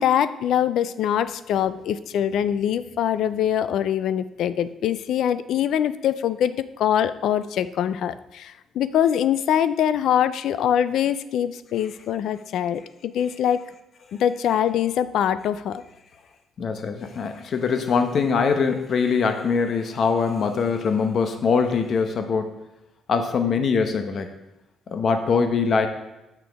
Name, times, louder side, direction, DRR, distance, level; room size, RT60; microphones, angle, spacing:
voice 1, 0.0-12.8 13.1-13.6 14.2-15.8, left 9 dB, 75° left, 14 dB, 0.3 m, -23 dB
voice 2, 16.6-22.6 23.1-24.3 24.9-25.9, left 5 dB, 55° left, 7 dB, 0.8 m, -22 dB
6.7 x 6.0 x 3.5 m, 0.97 s
cardioid pair, 90°, 0 cm